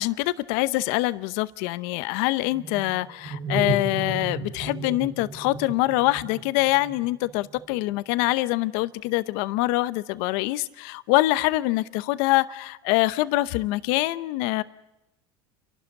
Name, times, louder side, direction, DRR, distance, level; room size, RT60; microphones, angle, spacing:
voice 1, 0.0-14.6, left 19 dB, 70° left, 0.8 m, -24 dB
sound 1, 2.4-7.8, right 3 dB, 55° right, 3.2 m, -34 dB
29.5 x 12.0 x 9.1 m
supercardioid pair, 100°, 13 cm